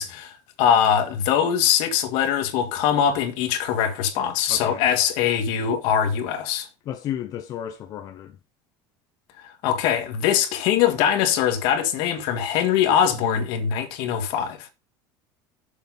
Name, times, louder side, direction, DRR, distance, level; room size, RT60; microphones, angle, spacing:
voice 1, 0.0-6.7 9.6-14.7, left 9 dB, 70° left, 2.0 m, -22 dB
voice 2, 4.5-5.1 6.9-8.4, left 10 dB, 45° left, 1.0 m, -33 dB
7.3 x 5.8 x 5.6 m
cardioid pair, 145°, 9 cm